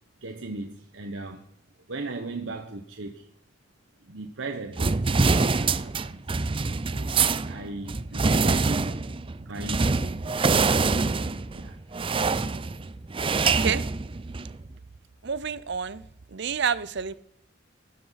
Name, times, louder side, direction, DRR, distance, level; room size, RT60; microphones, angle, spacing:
voice 1, 0.2-1.4 1.9-3.3 4.1-6.2 6.9-7.1 7.5-9.0 9.5-10.1 11.5-11.8, right 2 dB, 85° right, 1.2 m, -37 dB
sound 1, 4.8-14.6, right 4 dB, 30° right, 0.5 m, -25 dB
voice 2, 13.4-13.8 15.2-16.0 16.3-17.1, right 7 dB, 65° right, 0.7 m, -29 dB
18.5 x 10.5 x 5.8 m
head